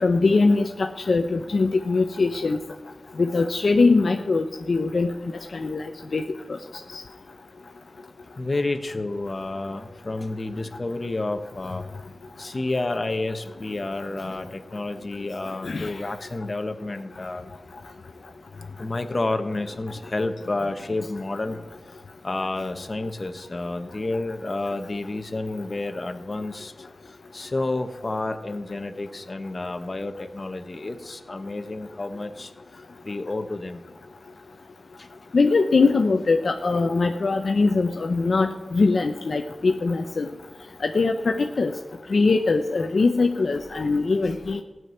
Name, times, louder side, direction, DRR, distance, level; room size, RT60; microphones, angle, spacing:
voice 1, 0.0-2.6 3.2-5.1 5.5-6.2 6.9-7.0 15.6-15.9 35.3-40.3 40.8-41.7 42.1-44.6, left 3 dB, 70° left, 5 dB, 0.8 m, -22 dB
voice 2, 8.4-11.8 12.4-17.5 18.8-21.6 22.2-26.7 27.3-32.5 33.0-33.8 35.0-35.1, left 2 dB, 45° left, 7 dB, 1.3 m, -30 dB
15.0 x 6.3 x 9.5 m, 1.1 s
cardioid pair, 50°, 0 cm